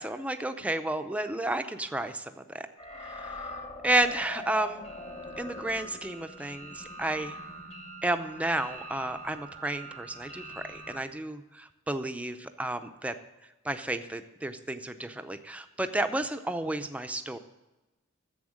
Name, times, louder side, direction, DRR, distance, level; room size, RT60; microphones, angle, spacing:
voice 1, 0.0-2.6 3.0-3.3 3.8-4.9 5.4-7.3 8.0-13.1 13.6-17.4, right 1 dB, 5° right, 8 dB, 0.5 m, -32 dB
sound 1, 2.8-11.0, equal, 30° left, 1.2 m, -43 dB
11.0 x 7.9 x 6.4 m, 1.1 s
head